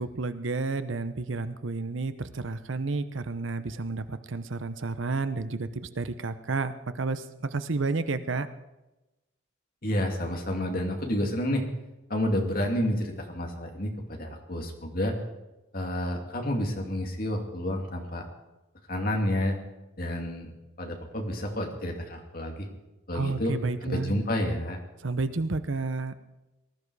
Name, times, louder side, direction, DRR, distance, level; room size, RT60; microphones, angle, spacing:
voice 1, 0.0-8.5 23.1-24.2 25.0-26.1, right 3 dB, 65° right, 12 dB, 0.8 m, -31 dB
voice 2, 9.8-11.6 12.1-15.1 15.7-18.2 18.9-19.6 20.0-20.5 20.8-22.7 23.1-23.5 23.9-24.8, left 1 dB, 45° left, 2 dB, 2.4 m, -29 dB
19.5 x 12.5 x 4.8 m, 1.0 s
head